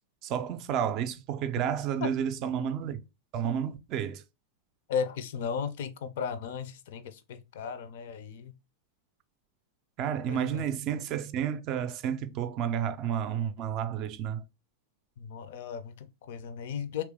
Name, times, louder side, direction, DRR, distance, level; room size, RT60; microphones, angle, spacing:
voice 1, 0.2-3.0 3.3-4.2 10.0-14.4, right 9 dB, 40° right, 0.4 m, -31 dB
voice 2, 4.9-8.5 10.3-10.7 15.2-17.0, left 7 dB, 55° left, 0.4 m, -35 dB
3.2 x 3.0 x 3.4 m
figure-of-eight pair, 90°, 0 cm